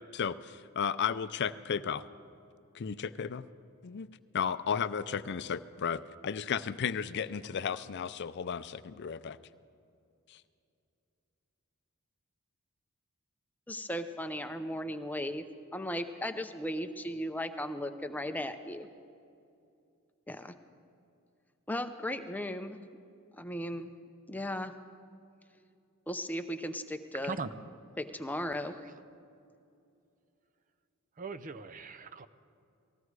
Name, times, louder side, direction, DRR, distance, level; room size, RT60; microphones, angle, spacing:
voice 1, 0.1-2.0 2.7-3.5 3.8-4.1 4.3-9.4 10.3-10.4, left 7 dB, 50° left, 0.4 m, -34 dB
voice 2, 13.7-15.4 15.7-18.9 20.3-20.5 21.7-22.8 23.3-23.9 24.3-24.7 26.1-27.4 28.0-28.8, equal, 10° left, 0.6 m, -36 dB
voice 3, 28.7-29.0 31.2-32.3, right 4 dB, 40° right, 0.5 m, -40 dB
19.0 x 15.0 x 4.8 m
head